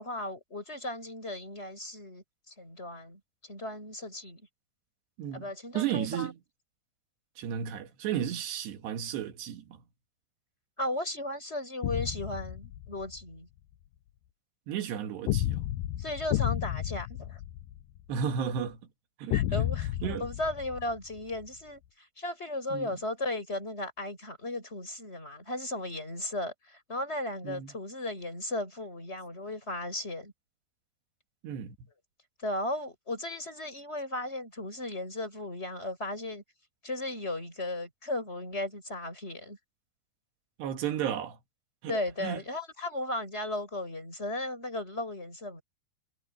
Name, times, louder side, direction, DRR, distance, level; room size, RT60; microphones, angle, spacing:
voice 1, 0.0-4.5 5.3-6.3 10.8-13.5 16.0-17.4 19.3-30.3 32.4-36.4 36.8-39.6 41.9-45.6, left 1 dB, 15° left, 6.7 m, -36 dB
voice 2, 5.2-5.5 5.7-6.3 7.4-9.8 14.7-15.6 18.1-18.8 19.2-19.4 20.0-20.3 22.7-23.0 27.4-27.7 31.4-31.8 40.6-41.4 41.8-42.4, right 9 dB, 80° right, 4.0 m, -33 dB
sound 1, 11.8-13.2 15.3-18.2 19.3-21.5, left 14 dB, 80° left, 1.9 m, -32 dB
omnidirectional pair, 4.9 m